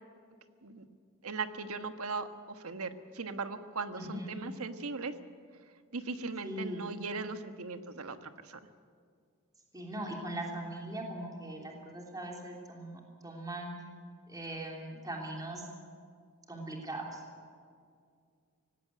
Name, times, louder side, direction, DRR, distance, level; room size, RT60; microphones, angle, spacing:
voice 1, 1.2-5.1 5.9-8.6, right 4 dB, 80° right, 9 dB, 1.4 m, -39 dB
voice 2, 4.0-4.4 6.4-6.9 9.7-13.7 14.3-15.6 16.5-17.2, right 1 dB, 15° right, 0 dB, 3.1 m, -40 dB
19.5 x 17.0 x 9.4 m, 2.2 s
head